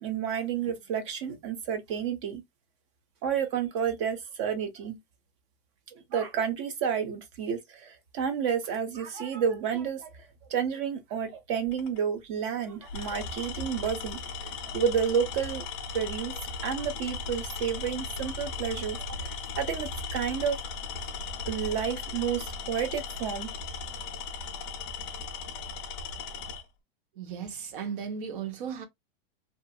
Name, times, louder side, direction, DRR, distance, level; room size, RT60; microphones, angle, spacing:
voice 1, 0.0-2.4 3.2-5.0 6.1-10.1 10.5-15.6 15.9-19.0 19.6-20.6 21.5-23.5, right 7 dB, 30° right, 0.5 m, -30 dB
Tools, 11.7-12.0 12.8-26.6, left 4 dB, 25° left, 0.4 m, -37 dB
voice 2, 27.2-28.8, right 7 dB, 60° right, 0.9 m, -36 dB
2.6 x 2.4 x 2.3 m
supercardioid pair, 170°, 29 cm